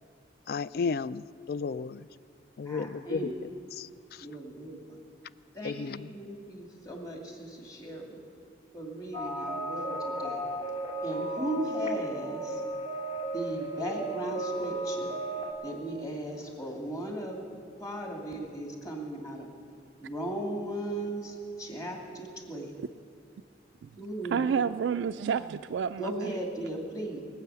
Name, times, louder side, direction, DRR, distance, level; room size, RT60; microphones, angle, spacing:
voice 1, 0.5-2.1 2.6-3.3 3.7-4.3 5.6-6.1, left 5 dB, 55° left, 18 dB, 0.3 m, -33 dB
voice 2, 2.6-3.4 4.2-5.0 5.5-8.2 8.7-10.5 11.0-12.6 13.3-15.2 15.6-17.5 17.8-19.5 20.0-22.8 24.0-24.4 26.0-27.2, right 1 dB, 20° left, 0 dB, 2.4 m, -37 dB
sound 1, 9.1-15.5, right 1 dB, 40° left, 1.9 m, -34 dB
voice 3, 24.3-26.3, right 7 dB, 80° right, 10 dB, 0.3 m, -29 dB
22.0 x 8.5 x 6.9 m, 2.4 s
head